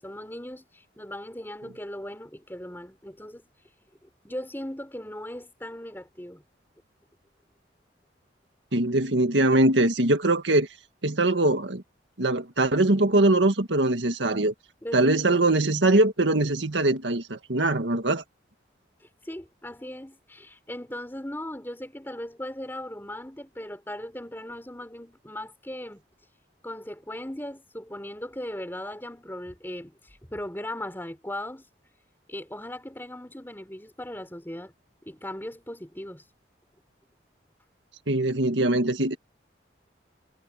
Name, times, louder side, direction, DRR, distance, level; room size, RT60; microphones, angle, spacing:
voice 1, 0.0-3.5 4.0-6.4 14.8-15.5 19.2-26.0 26.6-31.6 32.3-34.7 35.0-36.2, left 1 dB, 10° left, 3.9 m, -38 dB
voice 2, 8.7-10.7 11.0-11.8 12.2-14.5 14.9-18.2 38.1-39.2, right 2 dB, 85° right, 1.9 m, -22 dB
head